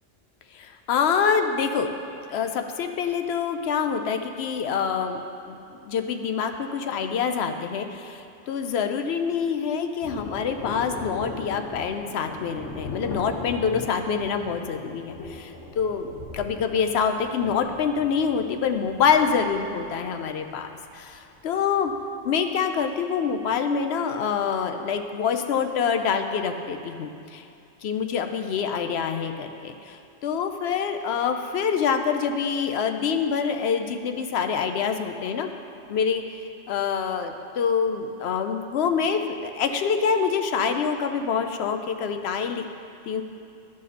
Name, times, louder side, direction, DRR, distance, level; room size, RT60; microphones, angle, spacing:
voice 1, 0.5-1.9 2.3-5.2 5.5-5.6 5.8-20.7 20.9-21.9 22.2-27.5 27.8-35.5 35.9-36.2 36.7-42.6 43.1-43.2, left 6 dB, 65° left, 6 dB, 0.8 m, -26 dB
Thunder, 10.0-22.0 22.3-22.4, left 2 dB, 80° left, 1.3 m, -40 dB
12.5 x 5.0 x 4.1 m, 2.7 s
omnidirectional pair, 1.2 m